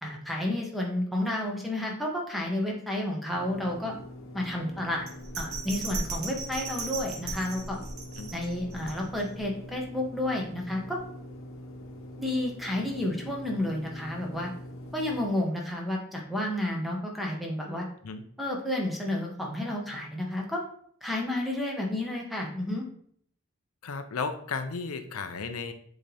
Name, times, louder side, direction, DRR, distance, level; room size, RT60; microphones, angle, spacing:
voice 1, 0.0-3.9 4.3-5.1 5.4-7.8 8.3-11.0 12.2-14.5 14.9-17.8 18.4-20.6 21.0-22.8, left 1 dB, ahead, -1 dB, 1.2 m, -31 dB
sound 1, 3.3-15.3, left 1 dB, 65° left, 1.1 m, -44 dB
Bell, 5.1-9.4 9.8-9.9, right 3 dB, 75° right, 1.4 m, -37 dB
voice 2, 23.8-25.7, left 4 dB, 85° left, 8 dB, 0.6 m, -34 dB
7.6 x 3.9 x 3.4 m, 0.63 s
head